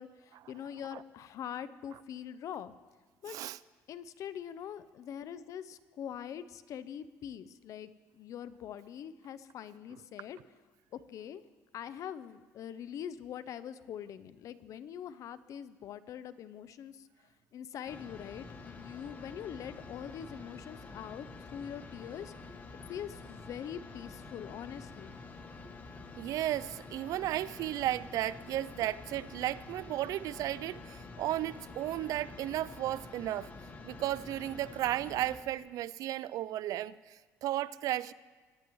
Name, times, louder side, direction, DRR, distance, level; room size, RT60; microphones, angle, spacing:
voice 1, 0.0-2.7 3.2-3.4 3.9-10.4 10.9-11.4 11.7-17.1 17.5-22.3 22.9-25.1, left 9 dB, 60° left, 15 dB, 0.6 m, -43 dB
voice 2, 3.3-3.6 26.2-33.5 33.8-38.1, right 13 dB, 70° right, 19 dB, 0.4 m, -34 dB
sound 1, 17.9-35.4, left 3 dB, 30° left, 1.4 m, -48 dB
22.0 x 10.5 x 3.1 m, 1.4 s
cardioid pair, 100°, 6 cm